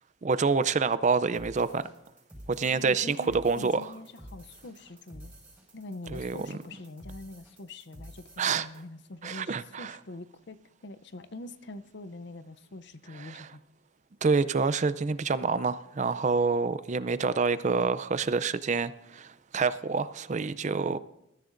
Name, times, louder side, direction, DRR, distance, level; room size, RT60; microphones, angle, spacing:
voice 1, 0.2-1.9 2.5-3.9 6.1-6.4 8.4-8.7 9.2-10.0 13.2-13.5 14.2-21.0, right 4 dB, 35° right, 0.4 m, -27 dB
sound 1, 1.3-8.8, equal, 5° right, 5.4 m, -50 dB
voice 2, 2.6-5.3 5.7-13.6, left 2 dB, 60° left, 0.6 m, -44 dB
21.0 x 14.0 x 2.6 m
head